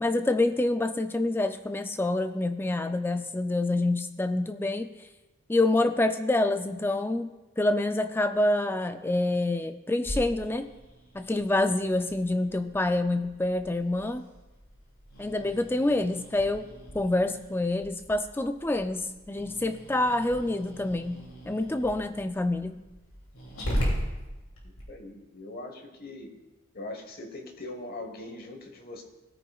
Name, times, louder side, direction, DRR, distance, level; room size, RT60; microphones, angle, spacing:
voice 1, 0.0-5.1 5.5-10.7 11.1-14.2 15.2-16.7 16.9-22.8, left 2 dB, 10° left, 9 dB, 0.3 m, -27 dB
Growling, 10.0-24.8, equal, 75° left, 2.7 m, -39 dB
voice 2, 24.6-26.3 26.7-29.0, left 2 dB, 45° left, 4 dB, 1.2 m, -41 dB
17.5 x 9.1 x 2.4 m, 1.0 s
head